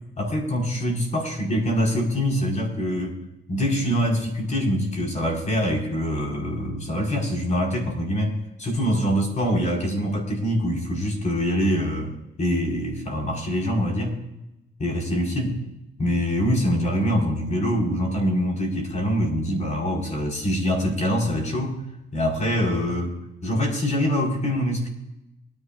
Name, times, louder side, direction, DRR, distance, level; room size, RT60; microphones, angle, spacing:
voice 1, 0.2-3.2 3.5-12.1 12.4-14.2 14.8-15.6 16.0-21.8 22.1-24.9, equal, 35° left, 0 dB, 4.8 m, -24 dB
23.5 x 11.0 x 2.6 m, 0.92 s
cardioid pair, 90°, 20 cm